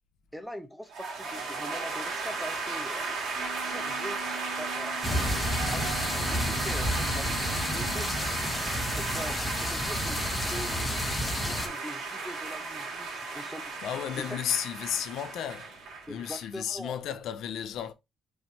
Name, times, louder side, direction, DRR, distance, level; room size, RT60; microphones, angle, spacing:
voice 1, 0.3-3.0 3.7-4.2 4.6-8.4 8.9-10.9 11.3-13.7 14.2-14.3 16.1-17.0, equal, ahead, 0.7 m, -43 dB
sound 1, 0.9-16.4, right 4 dB, 85° right, 1.9 m, -35 dB
Wind instrument woodwind instrument, 3.3-8.3, right 3 dB, 45° right, 1.8 m, -44 dB
sound 2, 5.0-11.7, left 1 dB, 20° left, 1.2 m, -31 dB
voice 2, 13.8-17.9, left 10 dB, 80° left, 0.5 m, -33 dB
4.7 x 3.1 x 2.7 m
cardioid pair, 90°, 0 cm